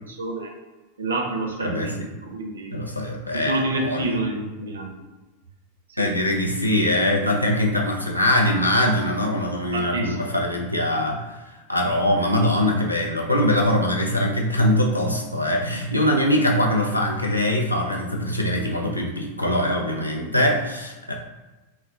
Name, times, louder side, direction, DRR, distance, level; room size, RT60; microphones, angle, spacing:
voice 1, 0.1-0.5 1.0-2.7 3.3-5.0 5.9-6.1 9.7-10.2, right 2 dB, 70° right, 1 dB, 0.5 m, -28 dB
voice 2, 1.6-2.1 2.7-4.2 6.0-21.1, left 1 dB, 85° left, 1 dB, 0.4 m, -22 dB
3.8 x 2.1 x 2.3 m, 1.1 s
figure-of-eight pair, 90°, 0 cm